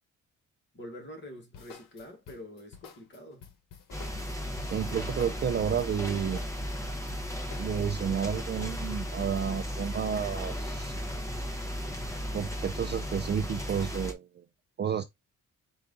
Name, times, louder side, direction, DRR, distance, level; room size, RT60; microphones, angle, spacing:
voice 1, 0.7-3.5, left 1 dB, 35° left, 1.7 m, -46 dB
sound 1, 1.5-7.7, left 6 dB, 75° left, 1.1 m, -50 dB
sound 2, 3.9-14.1, equal, 10° left, 0.8 m, -35 dB
voice 2, 4.7-6.4 7.6-11.0 12.3-14.5 14.8-15.0, right 8 dB, 35° right, 0.4 m, -31 dB
4.6 x 2.6 x 3.6 m
cardioid pair, 155°, 33 cm